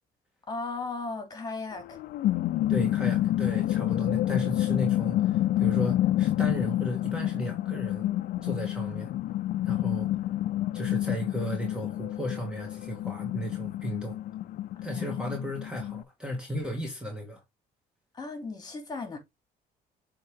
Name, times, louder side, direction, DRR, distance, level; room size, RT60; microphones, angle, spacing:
voice 1, 0.5-2.0 14.8-15.1 18.1-19.2, left 3 dB, 25° left, 2.8 m, -36 dB
sound 1, 1.8-16.0, left 13 dB, 60° left, 0.5 m, -28 dB
voice 2, 2.7-8.1 8.4-9.1 9.6-10.1 10.7-14.2 14.8-17.4, equal, 5° right, 1.8 m, -35 dB
7.7 x 3.7 x 3.6 m
cardioid pair, 110°, 17 cm